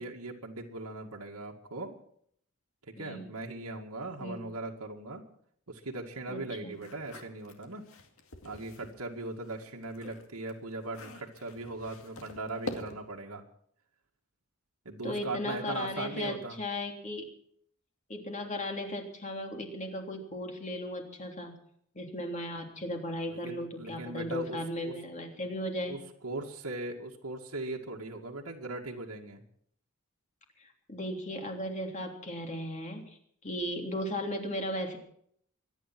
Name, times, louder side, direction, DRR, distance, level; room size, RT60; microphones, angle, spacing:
voice 1, 0.0-2.0 2.8-5.2 5.7-7.8 8.4-13.4 14.9-16.6 23.3-24.9 25.9-29.4, right 2 dB, 85° right, 0 dB, 2.1 m, -39 dB
voice 2, 3.0-3.3 4.2-4.4 6.3-6.7 10.0-10.1 15.0-17.3 18.1-21.5 21.9-26.0 30.6-33.2 33.4-35.0, left 1 dB, 35° left, 2 dB, 3.3 m, -36 dB
sound 1, 6.7-9.0 9.4-13.2, left 2 dB, 65° left, 2.3 m, -45 dB
24.0 x 10.0 x 6.0 m, 0.66 s
head